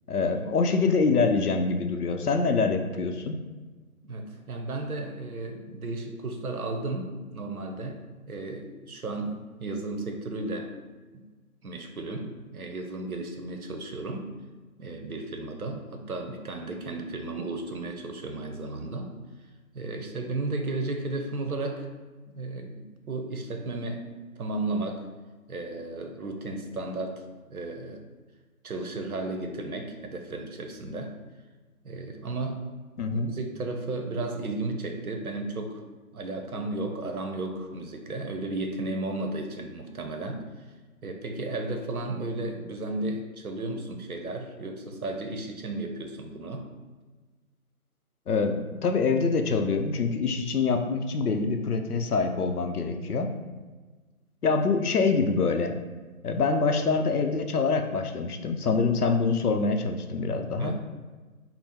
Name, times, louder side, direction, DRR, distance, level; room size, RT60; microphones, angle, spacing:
voice 1, 0.1-3.4 33.0-33.3 48.3-53.3 54.4-55.7 56.2-60.7, left 4 dB, 85° left, 5 dB, 0.6 m, -25 dB
voice 2, 4.0-8.0 8.3-10.7 11.1-11.2 11.6-14.3 14.8-19.1 19.7-21.9 22.3-24.0 24.4-25.1 25.5-28.1 28.6-31.1 31.8-32.6 33.1-35.8 36.1-40.4 41.0-46.7 60.6-60.7, right 2 dB, 75° right, 4 dB, 0.7 m, -34 dB
3.6 x 2.0 x 4.2 m, 1.3 s
figure-of-eight pair, 165°, 44 cm